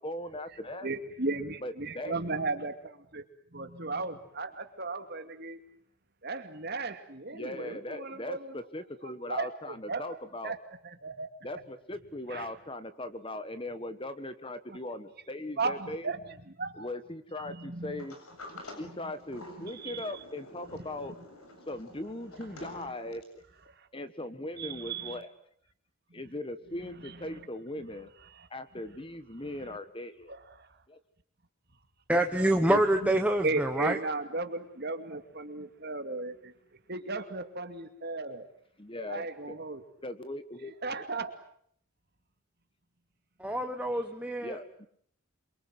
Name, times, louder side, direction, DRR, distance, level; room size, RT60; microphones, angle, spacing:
voice 1, 0.0-0.9 1.6-2.2 7.3-10.5 11.4-16.1 16.8-18.2 18.8-21.1 21.7-23.2 23.9-25.3 26.1-28.1 28.5-30.3 30.9-31.0 38.8-39.5 40.0-41.0 44.4-44.9, left 1 dB, 25° left, 11 dB, 1.4 m, -39 dB
voice 2, 0.8-3.2 3.5-5.6 6.2-8.6 9.0-10.2 10.4-11.3 11.5-11.6 12.3-12.5 14.7-14.8 15.6-16.2 16.5-16.9 17.4-18.1 19.7-20.2 22.6-22.9 23.7-23.9 24.6-25.2 26.1-26.2 27.0-27.4 28.3-28.5 29.6-29.8 30.3-30.7 32.7-33.1 33.4-36.5 36.9-38.5 39.1-39.8 40.6-41.3, right 3 dB, 45° right, 8 dB, 2.4 m, -36 dB
Sliding door, 18.0-23.4, left 2 dB, 85° left, 7.5 m, -49 dB
voice 3, 32.1-34.0 43.4-44.6, right 1 dB, 5° right, 4 dB, 1.1 m, -26 dB
27.5 x 24.0 x 7.9 m, 0.66 s
head